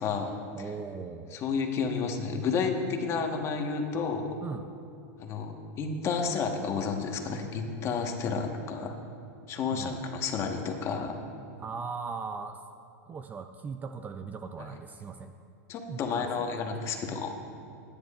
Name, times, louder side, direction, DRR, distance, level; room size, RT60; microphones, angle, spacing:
voice 1, 0.0-0.4 1.3-4.3 5.2-9.0 9.5-11.2 15.7-17.4, left 5 dB, 35° left, 3 dB, 1.3 m, -31 dB
voice 2, 0.5-1.4 4.4-4.7 9.7-10.0 11.6-12.6 13.0-15.3 15.9-17.2, right 5 dB, 20° right, 8 dB, 0.4 m, -39 dB
22.5 x 10.0 x 2.5 m, 2.4 s
supercardioid pair, 125°, 8 cm